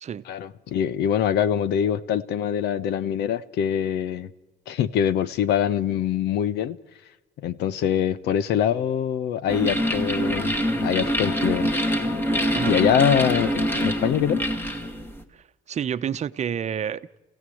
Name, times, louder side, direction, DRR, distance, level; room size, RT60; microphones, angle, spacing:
voice 1, 0.3-4.3 4.7-6.8 7.4-10.5 10.8-11.7 12.7-14.4, left 9 dB, 80° left, 1.1 m, -24 dB
sound 1, 9.5-15.2, equal, 10° left, 2.4 m, -25 dB
voice 2, 15.3-17.2, right 8 dB, 40° right, 0.9 m, -29 dB
28.0 x 16.5 x 7.8 m
cardioid pair, 110°, 17 cm